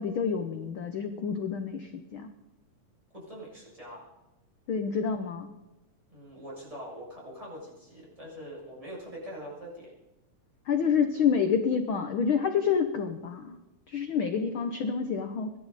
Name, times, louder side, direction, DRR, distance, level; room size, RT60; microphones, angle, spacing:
voice 1, 0.0-2.3 4.7-5.5 10.7-13.6 13.9-15.5, left 6 dB, 85° left, 7 dB, 1.1 m, -28 dB
voice 2, 3.1-4.1 6.1-9.9, equal, 10° right, -5 dB, 7.3 m, -43 dB
25.0 x 11.5 x 4.1 m, 1.0 s
omnidirectional pair, 3.7 m